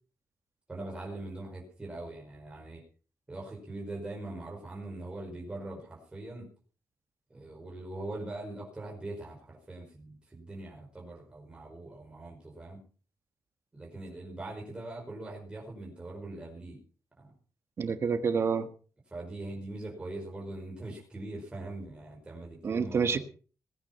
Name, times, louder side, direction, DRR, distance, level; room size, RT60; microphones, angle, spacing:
voice 1, 0.7-2.8 3.3-6.5 7.3-12.8 13.7-16.8 17.2-17.3 19.1-23.2, right 2 dB, 15° right, -2 dB, 5.0 m, -42 dB
voice 2, 17.8-18.7 22.6-23.2, right 5 dB, 45° right, 10 dB, 1.5 m, -28 dB
19.5 x 9.8 x 5.8 m, 0.40 s
wide cardioid pair, 155°, 6 cm